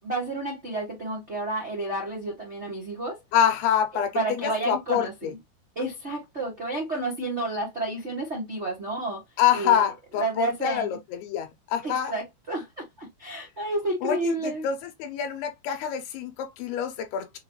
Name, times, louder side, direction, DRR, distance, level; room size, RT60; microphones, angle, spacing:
voice 1, 0.0-3.2 4.1-5.4 5.7-9.2 9.6-9.9 10.2-10.9 11.8-14.7, right 2 dB, 70° right, 0.6 m, -30 dB
voice 2, 3.3-5.3 9.4-12.1 14.0-17.4, left 9 dB, 85° left, 2.9 m, -26 dB
6.5 x 2.7 x 3.0 m
omnidirectional pair, 4.5 m